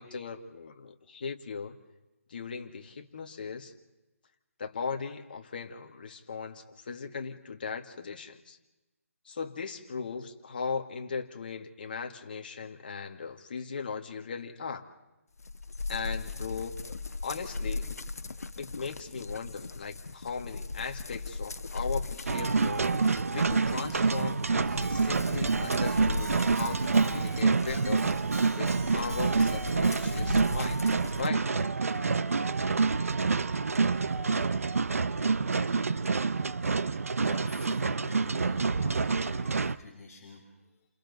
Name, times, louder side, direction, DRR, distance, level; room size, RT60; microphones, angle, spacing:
voice 1, 0.0-1.8 2.3-3.7 4.6-8.6 9.2-14.8 15.9-16.8 17.2-17.9 18.6-22.9 23.3-28.1 28.5-30.8 31.2-31.5, left 5 dB, 35° left, 5 dB, 1.7 m, -38 dB
sound 1, 15.4-31.3, left 3 dB, 80° left, 1.1 m, -38 dB
sound 2, 22.3-39.8, right 4 dB, 65° right, 0.8 m, -27 dB
Keyboard (musical), 24.8-30.5, right 3 dB, 80° right, 6.3 m, -45 dB
voice 2, 37.2-40.9, left 4 dB, 10° left, -9 dB, 3.9 m, -49 dB
30.0 x 28.0 x 4.1 m, 1.0 s
hypercardioid pair, 175°, 8 cm